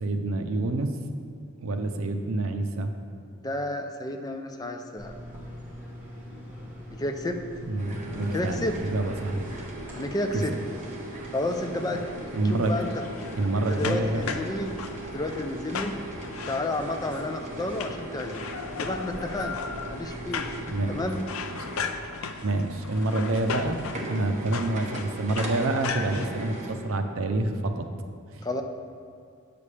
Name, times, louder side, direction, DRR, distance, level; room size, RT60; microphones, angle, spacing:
voice 1, 0.0-0.9 1.6-2.9 7.7-9.5 10.3-10.4 11.9-12.0 12.3-12.8 13.4-14.2 20.7-21.0 21.5-21.9 22.4-27.9 28.3-28.4, right 2 dB, 75° right, 6 dB, 0.6 m, -27 dB
voice 2, 3.4-5.1 6.9-7.4 8.3-8.8 9.9-10.5 11.3-12.9 13.6-16.0 16.5-19.6 19.9-20.5 20.9-21.2 28.4-28.6, left 1 dB, 20° left, 5 dB, 0.4 m, -31 dB
sound 1, 5.0-21.0, left 1 dB, 10° right, 1.6 m, -42 dB
sound 2, 7.8-26.7, right 2 dB, 35° right, 0.9 m, -40 dB
sound 3, 12.6-26.3, left 5 dB, 75° left, 0.4 m, -37 dB
8.3 x 6.9 x 3.3 m, 2.3 s
head